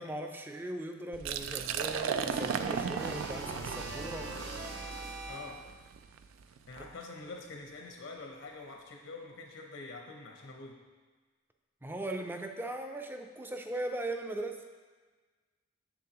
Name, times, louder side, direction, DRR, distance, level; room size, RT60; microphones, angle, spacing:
voice 1, 0.0-4.3 11.8-14.6, right 1 dB, 10° right, 5 dB, 0.4 m, -39 dB
Liquid, 1.1-6.9, right 7 dB, 80° right, 0.3 m, -36 dB
sound 1, 2.3-5.7, right 2 dB, 55° right, 1.1 m, -42 dB
voice 2, 5.3-5.6 6.7-10.8, left 3 dB, 85° left, 1 dB, 0.8 m, -46 dB
7.0 x 6.8 x 2.9 m, 1.4 s
head